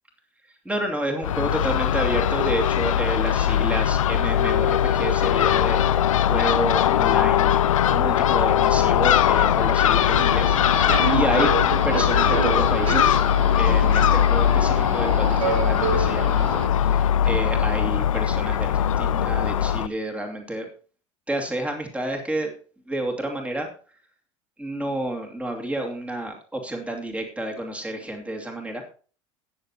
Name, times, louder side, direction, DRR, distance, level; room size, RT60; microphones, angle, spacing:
voice 1, 0.6-7.6 7.9-11.5 11.8-13.2 13.5-20.7 21.3-22.5 22.9-23.7 24.6-28.8, right 1 dB, 5° right, 2 dB, 2.5 m, -30 dB
Crow / Gull seagull, 1.2-19.9, left 10 dB, 80° left, 0.4 m, -20 dB
Subway metro underground, 10.1-16.7, right 8 dB, 75° right, 0.9 m, -29 dB
18.5 x 6.9 x 3.0 m, 0.39 s
hypercardioid pair, 75°, 17 cm